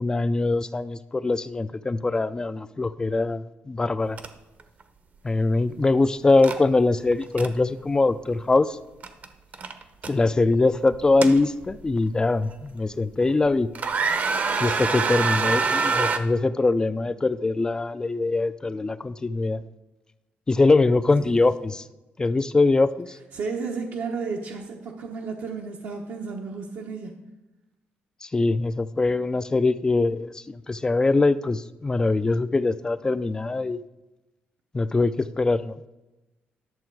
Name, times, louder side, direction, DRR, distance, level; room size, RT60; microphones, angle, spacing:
voice 1, 0.0-4.2 5.2-8.8 10.1-13.7 14.6-19.6 20.5-21.9 22.2-23.2 28.2-33.8 34.7-35.8, left 3 dB, 20° left, 14 dB, 0.3 m, -22 dB
sound 1, 4.2-4.3 4.6-4.8 6.4-6.6 7.1-7.5 9.0-9.3 9.5-10.1 10.9-11.9 12.5-12.6 13.2-13.5 13.8-16.2, right 4 dB, 45° right, 0.8 m, -25 dB
voice 2, 23.3-27.2, right 4 dB, 75° right, -1 dB, 1.0 m, -33 dB
11.0 x 6.9 x 4.7 m, 1.0 s
cardioid pair, 125°, 4 cm